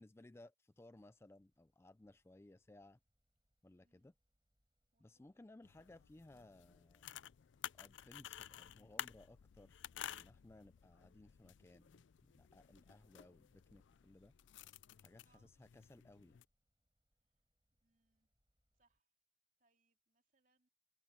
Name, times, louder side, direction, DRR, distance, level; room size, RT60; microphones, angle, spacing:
voice 1, 0.0-3.0 3.6-4.1 5.0-7.2 7.7-14.3 15.0-16.4, left 2 dB, 15° left, 0.3 m, -61 dB
sound 1, 0.9-19.0, equal, 25° right, 7.1 m, -88 dB
voice 2, 3.8-4.1 4.9-5.4 15.2-15.5 17.8-18.3 18.7-19.1 19.6-20.7, right 3 dB, 45° right, 3.5 m, -80 dB
sound 2, 5.6-16.4, left 10 dB, 85° left, 0.4 m, -53 dB
head